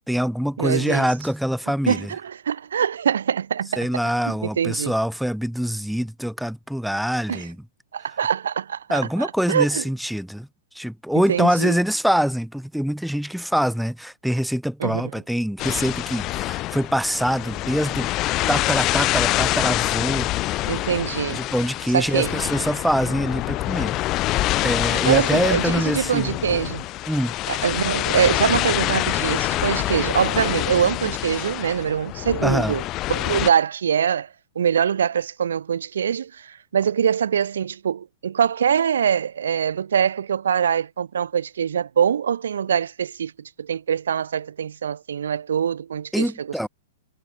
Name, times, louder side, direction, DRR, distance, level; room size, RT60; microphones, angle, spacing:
voice 1, 0.1-2.1 3.8-7.6 8.9-10.5 10.7-18.1 18.5-20.3 20.6-20.8 21.3-24.0 24.6-26.3 27.1-27.3 32.4-32.8 46.1-46.7, equal, ahead, 1.9 m, -24 dB
voice 2, 0.6-1.1 1.9-3.9 4.3-4.9 7.3-7.5 7.9-9.8 11.3-11.8 14.8-15.1 20.6-21.4 21.9-22.4 24.9-26.9 27.5-32.8 33.1-34.3 34.5-46.7, right 8 dB, 75° right, 1.2 m, -23 dB
sound 1, 15.6-33.5, left 17 dB, 35° left, 0.8 m, -26 dB
hypercardioid pair, 115°, 0 cm